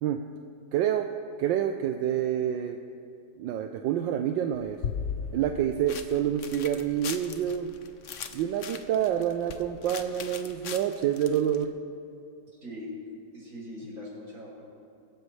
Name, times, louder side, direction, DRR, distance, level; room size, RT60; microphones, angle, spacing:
voice 1, 0.7-1.1 1.4-2.8 3.4-4.8 5.3-7.7 8.3-11.8, right 10 dB, 85° right, 6 dB, 1.4 m, -27 dB
sound 1, 4.5-11.6, left 7 dB, 55° left, 0.9 m, -38 dB
voice 2, 12.5-12.9 13.3-14.6, left 1 dB, 50° right, -5 dB, 5.2 m, -41 dB
23.5 x 14.0 x 3.2 m, 2.6 s
omnidirectional pair, 2.0 m